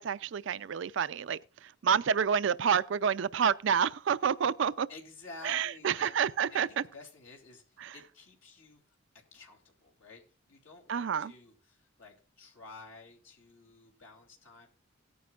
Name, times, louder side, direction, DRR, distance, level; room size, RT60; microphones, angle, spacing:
voice 1, 0.0-4.9 5.4-6.7 7.8-7.9 10.9-11.3, right 7 dB, 65° right, 0.4 m, -29 dB
voice 2, 4.9-6.2 6.5-8.8 9.3-14.7, left 3 dB, 80° left, 2.9 m, -52 dB
17.5 x 9.5 x 2.4 m
head